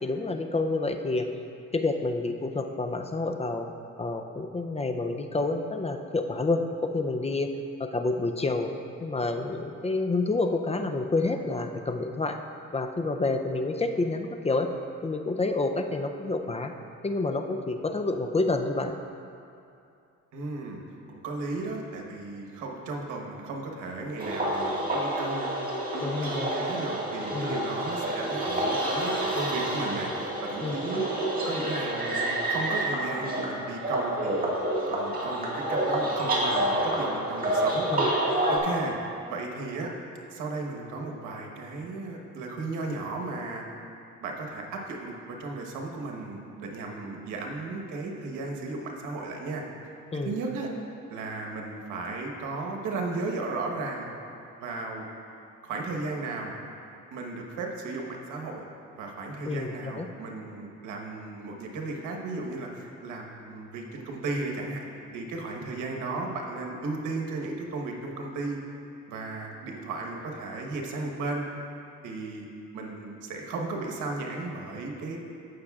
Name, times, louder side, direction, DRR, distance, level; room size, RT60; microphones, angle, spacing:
voice 1, 0.0-1.3 1.7-3.7 4.0-7.5 7.8-8.7 9.0-12.4 12.7-14.7 15.0-16.7 17.0-19.0 26.0-26.5 27.3-27.6 30.6-30.8 37.9-38.1 50.1-50.4 59.4-60.1, left 3 dB, 20° left, 5 dB, 0.5 m, -28 dB
voice 2, 20.3-20.8 21.1-25.6 25.9-31.1 31.4-34.5 34.9-37.9 38.5-39.0 39.3-39.9 40.3-43.6 44.2-49.6 50.2-50.7 51.1-54.1 54.6-55.0 55.6-56.6 57.1-58.6 59.0-64.8 65.1-68.6 69.1-71.4 72.0-72.5 72.7-75.2, right 3 dB, 90° right, 1 dB, 1.2 m, -35 dB
sound 1, 24.2-38.6, right 1 dB, 30° right, 1.8 m, -28 dB
15.5 x 6.4 x 2.4 m, 2.6 s
cardioid pair, 90°, 30 cm